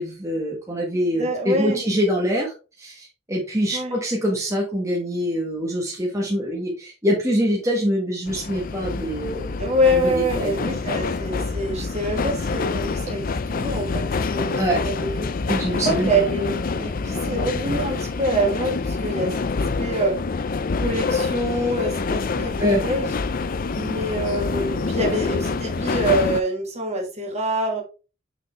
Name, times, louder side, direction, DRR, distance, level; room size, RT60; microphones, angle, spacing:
voice 1, 0.0-9.6 9.9-10.5 14.6-14.8 15.5-16.1 22.6-22.8, equal, 15° right, 1.3 m, -24 dB
voice 2, 1.1-1.8 3.7-4.0 9.6-15.3 15.9-20.2 20.8-23.2 23.7-27.8, right 1 dB, 35° right, 1.7 m, -25 dB
sound 1, 8.3-26.4, left 4 dB, 45° left, 0.4 m, -26 dB
6.4 x 4.9 x 3.2 m
head